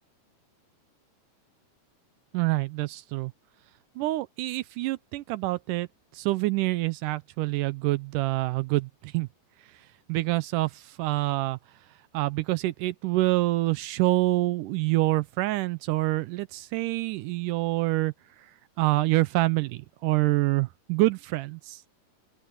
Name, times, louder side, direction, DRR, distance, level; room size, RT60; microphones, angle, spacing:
voice 1, 2.3-3.3 4.0-5.9 6.1-9.3 10.1-11.6 12.1-18.1 18.4-18.5 18.8-22.0, right 19 dB, 80° right, 2.1 m, -26 dB
open air
omnidirectional pair, 3.8 m